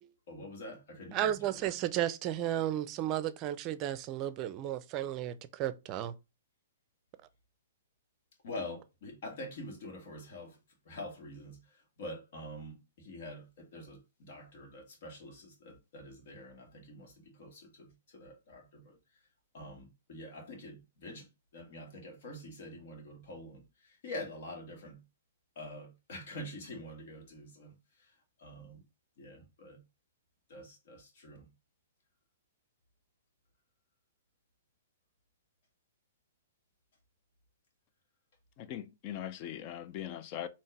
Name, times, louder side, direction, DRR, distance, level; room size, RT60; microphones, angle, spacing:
voice 1, 0.3-1.7 8.4-10.6 10.8-19.2 19.5-25.0 25.5-28.8 29.2-29.8 30.5-31.5, left 1 dB, 55° left, 1.9 m, -46 dB
voice 2, 1.1-6.1, right 11 dB, 35° right, 0.5 m, -33 dB
voice 3, 38.6-40.5, left 11 dB, 40° left, 0.6 m, -40 dB
4.5 x 2.9 x 3.2 m
hypercardioid pair, 120°, 0 cm